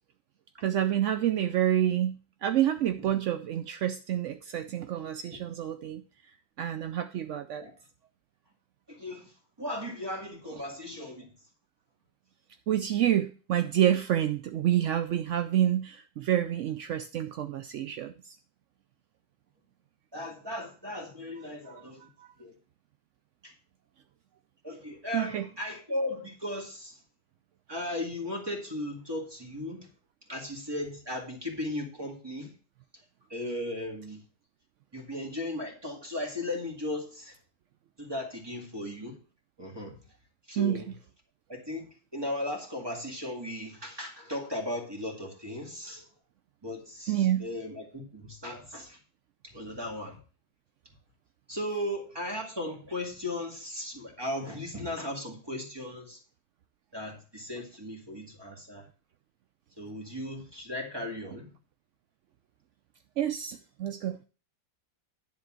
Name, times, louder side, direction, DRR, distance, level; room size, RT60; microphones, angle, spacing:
voice 1, 0.6-2.2 2.4-6.0 6.6-7.6 12.7-18.4 25.1-25.4 40.6-40.8 47.1-47.4 63.2-64.2, right 11 dB, 70° right, 9 dB, 0.7 m, -28 dB
voice 2, 8.9-9.3 9.6-11.3 20.1-22.1 22.4-22.5 23.4-23.5 24.6-26.9 27.7-29.9 30.3-32.5 33.3-34.2 34.9-37.4 38.0-39.2 39.6-39.9 40.5-40.9 41.5-46.1 46.6-49.0 49.4-50.2 51.5-56.2 56.9-58.9 59.8-61.5, left 1 dB, 15° right, 1 dB, 2.0 m, -36 dB
10.5 x 4.0 x 7.4 m, 0.36 s
omnidirectional pair, 1.8 m